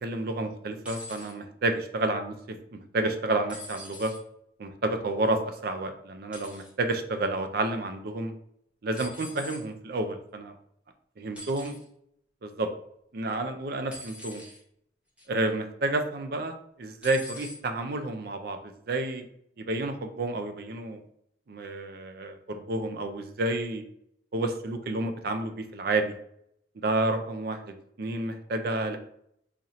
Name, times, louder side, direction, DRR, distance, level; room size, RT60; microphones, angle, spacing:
voice 1, 0.0-4.1 4.6-8.3 8.8-10.5 11.2-11.8 12.4-12.7 13.1-14.4 15.3-19.2 19.6-21.0 21.5-23.8 24.3-26.1 26.8-29.0, right 2 dB, 55° right, 7 dB, 0.5 m, -30 dB
sound 1, 0.8-1.3 3.5-4.2 6.3-6.7 9.0-9.7 11.4-11.9 13.9-14.6 15.2-15.5 17.0-17.6 18.6-18.7, left 1 dB, 5° right, 0.9 m, -43 dB
4.1 x 2.6 x 2.9 m, 0.71 s
head